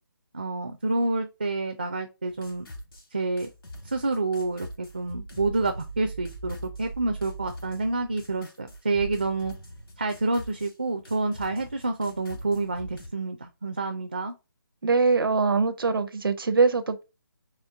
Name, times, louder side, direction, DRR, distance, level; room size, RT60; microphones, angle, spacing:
voice 1, 0.3-2.7 3.1-3.5 3.8-9.5 10.0-14.3, right 3 dB, 30° right, 0.4 m, -28 dB
sound 1, 2.3-3.1 3.4-10.7 11.1-13.1, right 1 dB, 75° left, 2.2 m, -42 dB
voice 2, 14.8-17.0, right 4 dB, 70° right, 0.6 m, -23 dB
4.3 x 3.1 x 3.5 m
hypercardioid pair, 180°, 12 cm